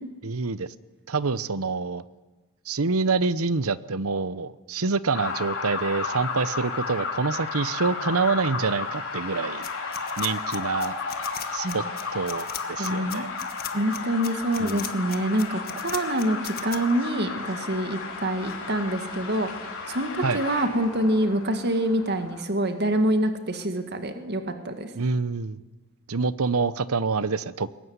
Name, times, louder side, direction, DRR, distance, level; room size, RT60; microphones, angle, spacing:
voice 1, 0.2-0.7 1.1-2.0 2.7-9.7 10.2-10.9 11.5-11.8 12.1-13.3 14.6-14.8 20.2-20.4 24.9-25.6 26.1-27.8, right 4 dB, 75° right, 16 dB, 0.9 m, -26 dB
sound 1, 5.1-20.7, left 4 dB, 60° left, 4.8 m, -33 dB
sound 2, 9.6-16.8, left 11 dB, 45° left, 1.6 m, -37 dB
voice 2, 12.8-13.3 13.7-19.5 19.9-24.9, right 1 dB, 50° right, 7 dB, 2.0 m, -26 dB
sound 3, 16.7-22.4, left 3 dB, 80° left, 4.7 m, -44 dB
22.5 x 20.0 x 9.6 m, 1.2 s
head